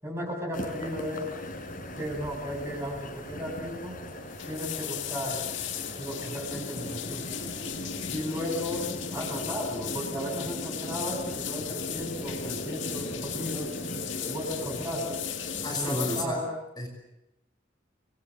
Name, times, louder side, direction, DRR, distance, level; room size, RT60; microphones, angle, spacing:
voice 1, 0.0-1.3 2.0-4.0 4.4-5.5 6.0-7.5 8.1-13.7 14.3-15.3 15.7-16.5, equal, 15° right, 1 dB, 6.9 m, -35 dB
sound 1, 0.5-16.3, equal, 45° left, 4.7 m, -39 dB
sound 2, 2.0-2.2 2.4-2.8 3.0-3.1 4.1-16.2, left 12 dB, 80° left, 2.2 m, -37 dB
voice 2, 15.6-16.5 16.8-16.9, left 1 dB, 20° left, 2 dB, 5.9 m, -31 dB
28.5 x 22.0 x 7.4 m, 0.87 s
head